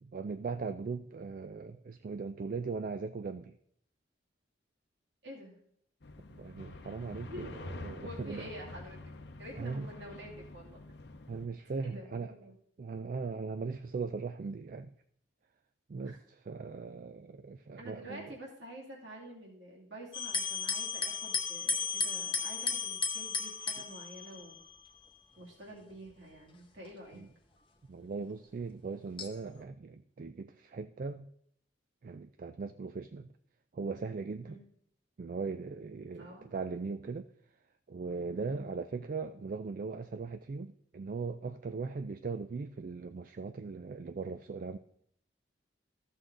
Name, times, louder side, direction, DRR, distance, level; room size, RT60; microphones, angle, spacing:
voice 1, 0.0-3.6 6.4-8.5 9.6-9.9 11.3-12.3 12.8-14.9 15.9-18.4 27.1-27.3 27.9-31.3 32.0-33.3 33.7-34.6 35.2-37.3 37.9-44.8, right 4 dB, 45° right, 9 dB, 0.3 m, -39 dB
voice 2, 5.2-5.6 7.2-7.5 8.0-9.0 9.4-10.8 11.8-12.5 17.8-24.6 25.4-27.2 34.4-34.6 36.1-36.5 38.3-38.6, right 1 dB, 65° right, -2 dB, 2.4 m, -48 dB
sound 1, 6.0-11.5, left 2 dB, 60° left, 0.7 m, -47 dB
sound 2, 20.1-24.9 25.7-26.2 26.8-26.9 29.2-29.6, left 5 dB, 25° left, 0.9 m, -35 dB
14.0 x 6.3 x 3.8 m, 0.68 s
head